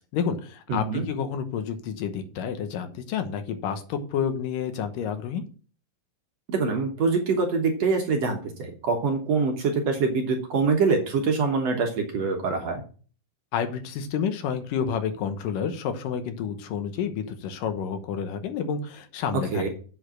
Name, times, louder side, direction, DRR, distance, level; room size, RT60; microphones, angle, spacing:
voice 1, 0.1-5.4 13.5-19.7, left 7 dB, 75° left, 8 dB, 2.6 m, -29 dB
voice 2, 0.7-1.1 6.5-12.8 19.5-19.7, right 4 dB, 60° right, 3 dB, 2.0 m, -24 dB
8.2 x 6.4 x 6.2 m, 0.40 s
omnidirectional pair, 4.0 m